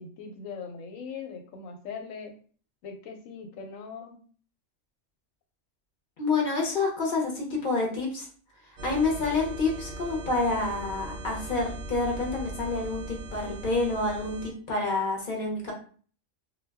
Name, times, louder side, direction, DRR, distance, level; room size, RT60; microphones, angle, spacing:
voice 1, 0.0-2.3 2.8-4.2, left 5 dB, 85° left, 4 dB, 1.0 m, -40 dB
voice 2, 6.2-8.3 8.8-15.7, left 3 dB, 50° left, 0 dB, 0.7 m, -28 dB
sound 1, 8.8-14.5, right 2 dB, 60° right, 0.6 m, -39 dB
2.2 x 2.1 x 3.3 m, 0.43 s
omnidirectional pair, 1.4 m